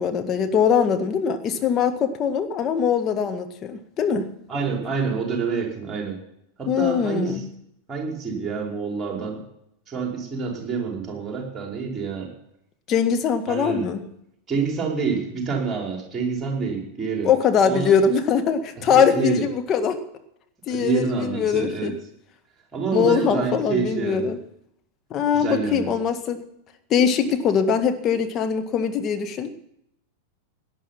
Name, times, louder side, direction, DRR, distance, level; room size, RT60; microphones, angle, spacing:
voice 1, 0.0-4.3 6.7-7.4 12.9-14.0 17.2-20.0 20.7-22.0 22.9-24.4 25.1-26.4 26.9-29.5, left 7 dB, 30° left, 7 dB, 1.9 m, -22 dB
voice 2, 4.5-6.2 6.6-7.4 7.9-9.4 9.9-12.3 13.5-13.8 14.5-17.3 17.6-18.0 18.9-19.4 20.7-21.9 22.7-24.3 25.3-25.9, right 5 dB, 20° right, 0 dB, 5.1 m, -27 dB
18.0 x 11.0 x 5.9 m, 0.75 s
figure-of-eight pair, 90°, 0 cm